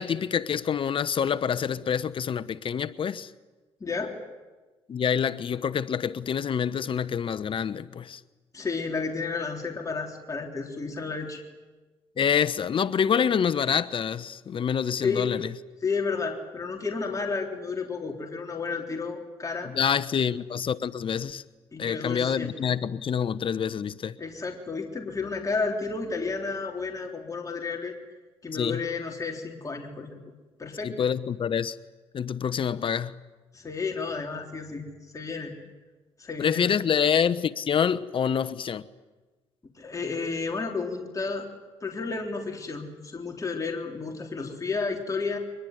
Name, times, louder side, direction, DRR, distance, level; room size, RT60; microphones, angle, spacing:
voice 1, 0.0-3.3 4.9-8.2 12.2-15.5 19.7-21.4 21.8-24.2 28.5-28.8 30.8-31.8 32.1-33.2 36.4-38.8, left 7 dB, 50° left, 1.0 m, -26 dB
voice 2, 3.8-4.1 8.5-11.4 15.0-15.3 15.8-19.7 21.7-22.5 24.2-28.0 28.4-30.1 30.6-31.1 33.5-34.9 35.1-35.5 36.2-36.8 39.8-41.5 41.8-45.4, left 4 dB, 30° left, 3.6 m, -32 dB
24.0 x 21.5 x 9.3 m
supercardioid pair, 65°, 11 cm